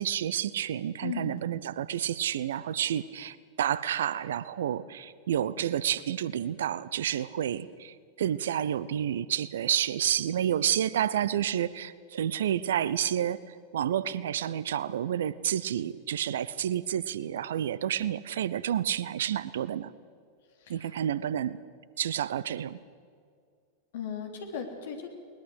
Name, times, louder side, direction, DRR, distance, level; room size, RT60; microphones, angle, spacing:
voice 1, 0.0-13.4 13.7-19.9 20.7-21.6 22.0-22.8, right 10 dB, 60° right, 19 dB, 0.7 m, -30 dB
voice 2, 1.0-1.4 20.6-20.9 23.9-25.1, left 7 dB, 55° left, 4 dB, 3.3 m, -37 dB
21.0 x 20.0 x 8.1 m, 2.1 s
figure-of-eight pair, 90°, 0 cm